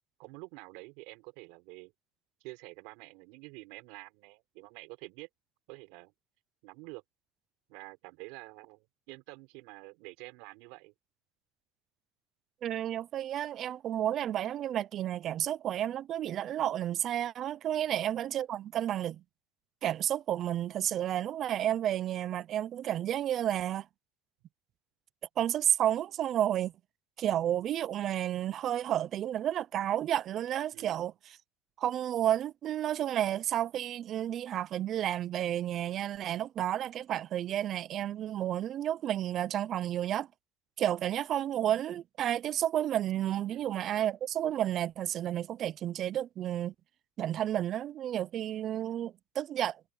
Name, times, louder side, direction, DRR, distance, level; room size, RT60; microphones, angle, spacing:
voice 1, 0.2-1.9 2.4-5.3 5.7-6.1 6.6-7.0 7.7-10.9 17.7-18.1 30.7-31.1 41.3-41.4 43.5-43.8, right 26 dB, 60° right, 4.9 m, -48 dB
voice 2, 12.6-19.2 19.8-23.9 25.4-26.7 27.2-31.1 31.8-40.3 40.8-46.7 47.2-49.8, right 11 dB, 35° right, 0.6 m, -31 dB
cardioid pair, 155°, 0 cm